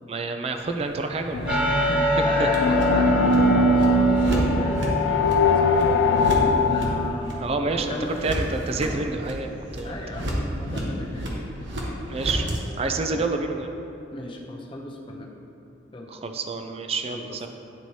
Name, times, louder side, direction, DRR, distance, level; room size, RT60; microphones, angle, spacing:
voice 1, 0.1-1.7 2.4-2.5 7.4-10.2 12.1-13.7 16.1-17.5, right 3 dB, 30° right, 5 dB, 0.4 m, -29 dB
sound 1, 0.5-12.6, equal, 70° right, 1.1 m, -32 dB
sound 2, 1.3-7.1, left 2 dB, 75° left, 0.4 m, -21 dB
voice 2, 1.4-6.0 6.6-8.3 9.8-11.3 13.0-13.2 14.1-15.3 15.9-16.1 17.0-17.5, left 1 dB, 25° left, -1 dB, 0.6 m, -35 dB
sound 3, 1.5-6.8, equal, 5° right, 1.0 m, -27 dB
10.5 x 4.1 x 3.1 m, 2.9 s
head